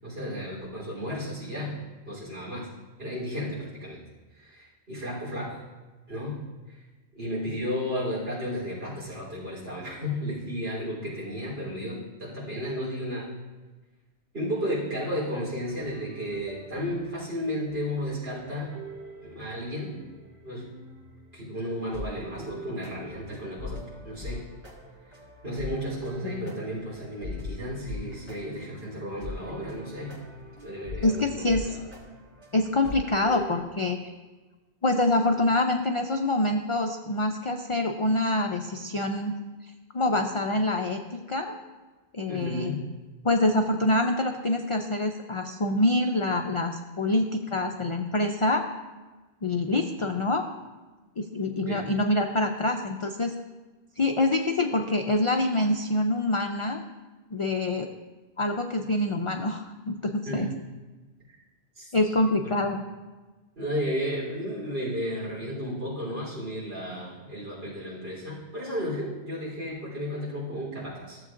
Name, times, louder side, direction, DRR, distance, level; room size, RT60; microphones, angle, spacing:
voice 1, 0.0-1.8 2.0-2.7 3.0-4.0 4.3-5.6 6.1-6.4 6.7-6.8 7.1-13.3 14.3-18.7 19.2-20.0 20.4-20.6 21.3-24.4 25.4-30.1 30.6-31.9 42.3-42.8 51.7-51.9 60.3-60.5 61.8-62.1 62.4-62.6 63.6-71.2, equal, 60° right, -6 dB, 3.8 m, -33 dB
sound 1, 15.7-33.6, left 1 dB, 85° right, 2.4 m, -43 dB
voice 2, 31.0-31.7 32.5-34.1 34.8-39.3 39.9-41.6 42.1-42.7 43.2-48.6 49.4-50.4 51.2-53.3 54.0-56.8 57.3-57.9 58.4-60.5 61.9-62.8, left 2 dB, 60° left, 4 dB, 0.3 m, -26 dB
14.5 x 7.6 x 2.5 m, 1.3 s
omnidirectional pair, 1.1 m